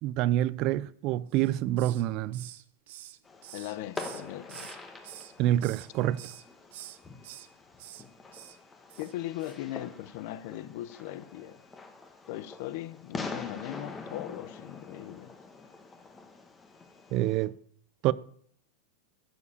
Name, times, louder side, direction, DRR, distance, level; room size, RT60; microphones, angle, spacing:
voice 1, 0.0-2.5 5.4-6.2 17.1-17.5 18.0-18.1, right 14 dB, 40° right, 0.4 m, -27 dB
Hiss, 1.3-2.1 2.3-4.8 5.0-5.9 6.2-6.4 6.7-7.5 7.8-8.0 8.3-8.6 8.9-9.1 9.4-9.6, right 14 dB, 65° right, 0.9 m, -47 dB
Fireworks, 3.2-17.5, left 4 dB, 15° left, 1.3 m, -45 dB
voice 2, 3.5-4.7 9.0-11.6 12.3-15.3, left 14 dB, 55° left, 0.7 m, -39 dB
12.0 x 5.0 x 8.3 m
supercardioid pair, 155°, 0 cm